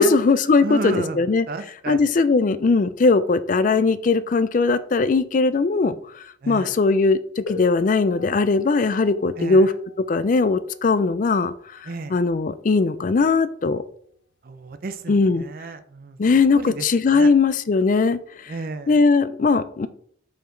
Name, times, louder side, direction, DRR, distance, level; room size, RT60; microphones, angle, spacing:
voice 1, 0.0-1.5 1.9-5.9 6.5-9.7 10.1-11.5 12.1-13.8 15.1-15.4 16.2-18.2 18.9-19.9, left 4 dB, 45° left, 14 dB, 0.4 m, -19 dB
voice 2, 0.6-2.1 6.4-6.8 9.4-9.7 11.8-12.2 14.4-17.3 18.5-19.0, right 3 dB, 50° right, 11 dB, 0.5 m, -33 dB
sound 1, 7.5-12.9 14.0-14.1 14.9-15.1, left 4 dB, 90° left, 1.0 m, -41 dB
5.2 x 4.8 x 3.8 m, 0.63 s
head